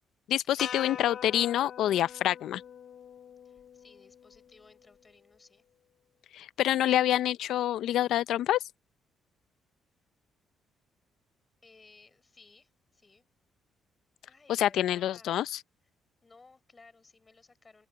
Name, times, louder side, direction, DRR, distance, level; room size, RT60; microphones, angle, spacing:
voice 1, 0.3-2.6 6.3-8.6 14.5-15.5, left 12 dB, 75° left, 0.5 m, -27 dB
sound 1, 0.6-4.9, left 8 dB, 45° left, 0.8 m, -43 dB
voice 2, 3.4-5.6 11.6-13.2 14.3-15.4 16.2-17.9, left 3 dB, 20° left, 6.2 m, -58 dB
open air
cardioid pair, 165°, 0 cm